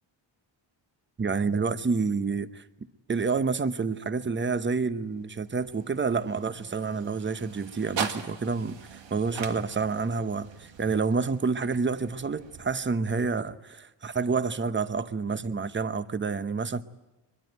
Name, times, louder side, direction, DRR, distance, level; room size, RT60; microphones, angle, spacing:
voice 1, 1.2-2.6 3.1-16.8, right 4 dB, 25° right, 0.8 m, -28 dB
sound 1, 5.0-13.2, right 7 dB, 75° right, 1.8 m, -41 dB
24.0 x 21.5 x 9.2 m
wide cardioid pair, 145°, 45 cm